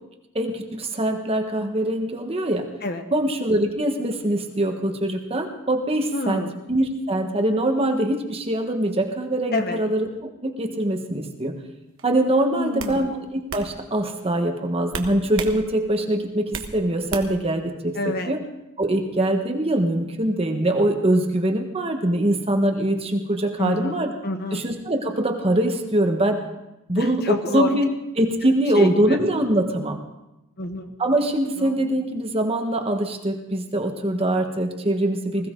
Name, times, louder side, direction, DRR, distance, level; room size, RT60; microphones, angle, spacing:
voice 1, 0.3-2.7 3.1-6.4 6.7-11.5 12.0-17.9 18.3-18.4 18.8-24.1 24.5-26.4 26.9-27.9 28.2-30.0 31.0-35.5, right 1 dB, 25° right, 4 dB, 1.3 m, -23 dB
voice 2, 6.1-6.5 9.5-9.9 12.5-13.1 17.9-18.4 23.6-24.6 26.9-27.7 28.7-29.2 30.6-30.9 31.6-31.7, left 2 dB, 45° left, 6 dB, 1.3 m, -28 dB
sound 1, 12.0-12.2 12.8-13.0 13.5-13.7 14.9-15.6 15.9-16.7 17.1-17.5, right 5 dB, 60° right, 1.3 m, -32 dB
20.5 x 16.0 x 3.8 m, 0.94 s
head